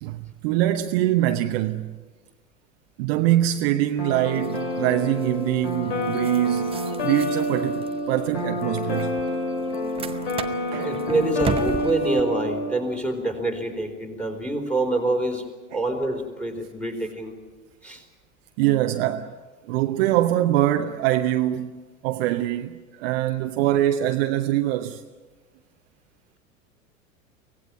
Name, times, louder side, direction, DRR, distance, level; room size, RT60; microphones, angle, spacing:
voice 1, 0.0-2.0 3.0-9.1 10.7-10.9 15.7-15.8 18.6-19.3 19.6-25.0, right 13 dB, 45° right, 1.0 m, -24 dB
sound 1, 4.0-12.7, left 1 dB, 55° left, 5.9 m, -28 dB
sound 2, 4.2-12.2, right 6 dB, 15° right, 0.9 m, -37 dB
voice 2, 10.8-15.4 15.7-17.3 17.8-18.0, right 2 dB, 5° left, 4.3 m, -26 dB
24.5 x 18.0 x 8.9 m
figure-of-eight pair, 90°, 42 cm